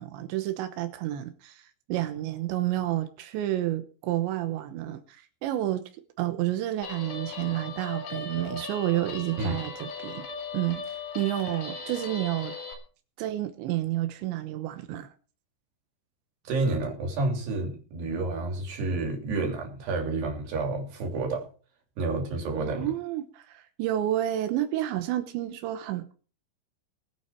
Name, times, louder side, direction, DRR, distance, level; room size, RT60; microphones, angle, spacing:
voice 1, 0.0-5.2 5.4-5.8 6.2-10.2 10.5-12.5 13.2-15.1 22.6-26.1, right 13 dB, 90° right, 9 dB, 3.4 m, -30 dB
Guitar, 6.8-12.7, left 4 dB, 75° left, 5.3 m, -38 dB
voice 2, 16.5-21.5 22.0-22.9, right 3 dB, 70° right, 2 dB, 5.4 m, -29 dB
22.0 x 9.2 x 4.4 m, 0.38 s
omnidirectional pair, 5.0 m